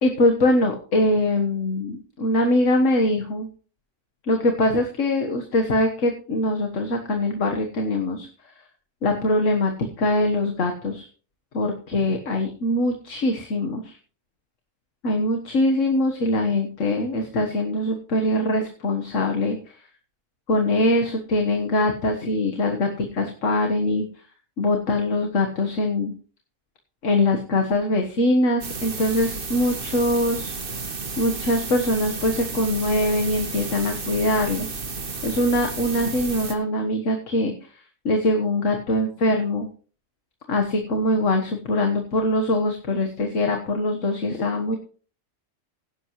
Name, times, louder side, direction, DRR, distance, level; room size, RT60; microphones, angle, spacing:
voice 1, 0.0-3.5 4.2-8.3 9.0-9.7 10.0-11.1 11.5-14.0 15.0-19.6 20.5-24.1 24.6-26.1 27.0-30.6 31.2-34.8 35.2-37.5 38.1-39.7 40.5-44.8, left 1 dB, 65° left, 3 dB, 1.7 m, -22 dB
sound 1, 28.6-36.6, right 4 dB, 45° right, 1.5 m, -32 dB
16.5 x 11.0 x 3.1 m, 0.39 s
omnidirectional pair, 1.4 m